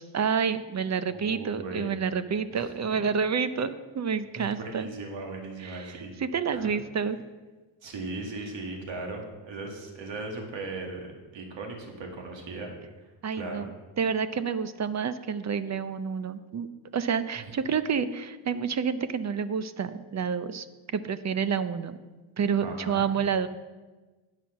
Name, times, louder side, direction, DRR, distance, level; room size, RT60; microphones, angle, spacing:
voice 1, 0.0-4.9 5.6-7.2 13.2-13.7 14.0-16.7 16.9-20.7 20.9-22.0 22.4-23.5, right 6 dB, 35° right, 12 dB, 0.6 m, -29 dB
voice 2, 1.1-1.9 2.5-2.7 2.9-3.0 4.4-6.1 6.5-6.7 7.8-11.1 11.3-12.7 13.4-13.7 17.4-17.5 22.6-23.1, right 3 dB, 60° right, 1 dB, 2.1 m, -38 dB
9.6 x 5.8 x 5.9 m, 1.2 s
cardioid pair, 85°, 50 cm